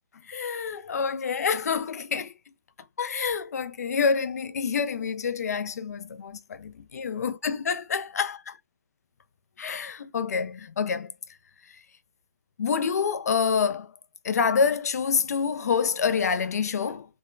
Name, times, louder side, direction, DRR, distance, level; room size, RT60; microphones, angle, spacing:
voice 1, 0.3-2.3 3.0-8.4 9.6-11.1 12.6-13.9 14.2-17.1, left 6 dB, 70° left, 0.5 m, -27 dB
5.2 x 2.2 x 2.3 m
hypercardioid pair, 140°, 9 cm